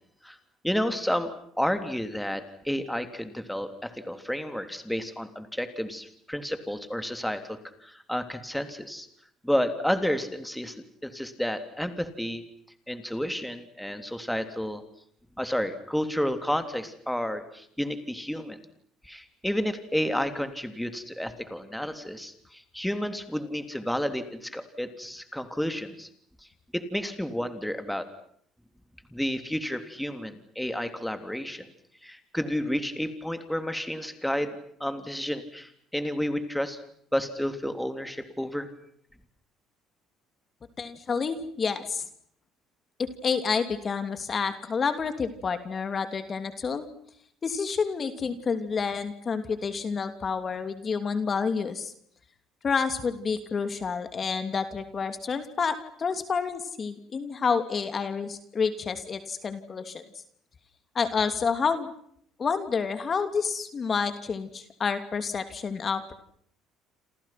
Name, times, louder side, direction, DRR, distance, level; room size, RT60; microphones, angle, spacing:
voice 1, 0.6-9.1 9.4-10.7 11.0-12.4 12.9-14.8 15.4-18.6 19.0-26.1 26.7-28.1 29.1-31.7 32.0-34.5 34.8-36.8 37.1-38.7, equal, 5° left, 8 dB, 3.4 m, -31 dB
voice 2, 40.8-42.1 43.0-46.9 47.4-51.9 52.6-60.0 60.9-61.9 62.4-66.1, left 5 dB, 35° left, 9 dB, 2.9 m, -29 dB
28.5 x 28.0 x 6.0 m, 0.67 s
supercardioid pair, 85°, 0 cm